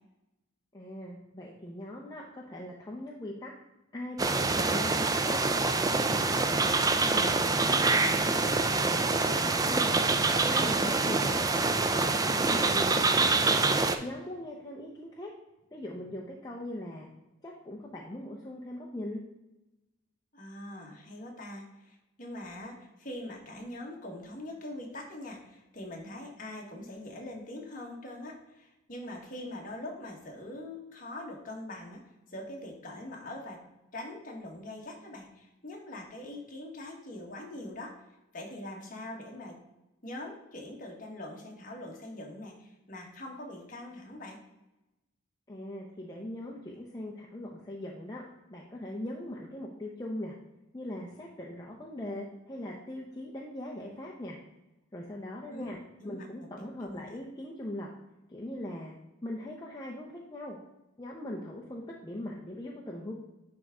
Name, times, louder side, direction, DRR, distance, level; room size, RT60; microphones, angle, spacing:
voice 1, 0.7-3.5 3.9-5.4 5.7-8.7 9.3-10.0 10.3-11.6 11.9-13.7 14.0-15.3 15.7-17.1 17.4-19.2 45.5-48.2 48.5-50.3 50.7-54.4 54.9-55.8 56.0-57.9 58.3-58.9 59.2-60.6 61.0-63.1, left 1 dB, 20° left, -3 dB, 0.7 m, -40 dB
sound 1, 4.2-14.0, right 3 dB, 20° right, 0.3 m, -26 dB
voice 2, 9.6-10.7 20.3-32.0 32.3-33.6 33.9-38.1 38.3-39.6 40.0-44.4 55.5-56.5 56.8-57.2, left 1 dB, 40° left, 0 dB, 1.5 m, -43 dB
10.5 x 3.5 x 3.7 m, 0.95 s
head